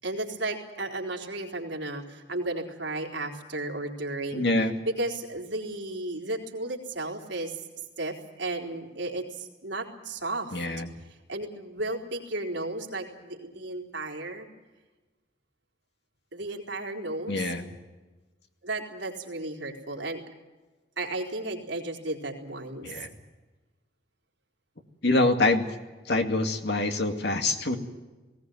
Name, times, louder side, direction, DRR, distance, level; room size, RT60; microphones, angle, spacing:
voice 1, 0.0-4.5 4.9-7.6 8.0-10.6 11.3-14.5 16.3-17.5 18.6-20.2 21.0-23.1, right 2 dB, 85° right, 1 dB, 3.9 m, -34 dB
voice 2, 4.3-4.8 10.5-10.9 17.3-17.7 22.8-23.1 25.0-25.6 26.1-27.8, left 2 dB, 65° left, 5 dB, 2.3 m, -25 dB
19.5 x 18.5 x 9.3 m, 1.2 s
head